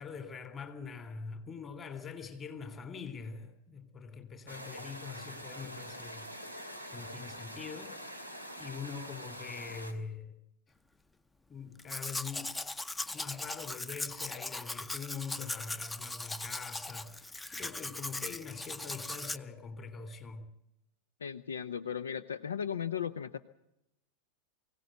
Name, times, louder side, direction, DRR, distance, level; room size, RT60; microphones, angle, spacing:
voice 1, 0.0-6.3 6.5-6.6 6.9-7.9 8.6-10.4 11.5-12.5 13.0-20.5, left 5 dB, 25° left, 3.3 m, -44 dB
sound 1, 4.5-9.9, equal, 85° left, 2.6 m, -45 dB
Domestic sounds home sounds, 11.8-19.4, left 2 dB, 10° left, 0.7 m, -39 dB
voice 2, 21.2-23.4, left 8 dB, 70° left, 0.7 m, -36 dB
23.5 x 17.0 x 7.8 m
figure-of-eight pair, 90°, 0 cm